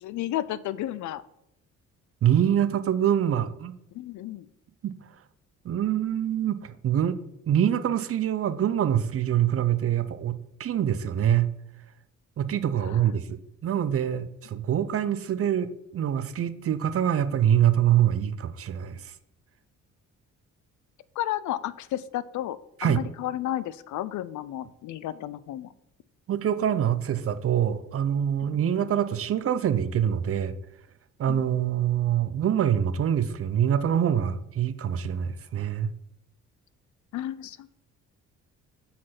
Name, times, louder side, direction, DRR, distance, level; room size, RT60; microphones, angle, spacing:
voice 1, 0.0-1.2 3.9-4.5 12.8-13.0 21.2-25.7 28.6-28.8 31.3-31.4 37.1-37.8, left 13 dB, 75° left, 17 dB, 0.5 m, -32 dB
voice 2, 2.2-3.7 4.8-4.9 5.6-7.2 7.5-11.5 12.4-19.1 22.8-23.1 26.3-30.5 31.2-35.9, right 10 dB, 50° right, 13 dB, 0.6 m, -25 dB
7.5 x 4.2 x 5.9 m, 0.80 s
cardioid pair, 90°, 30 cm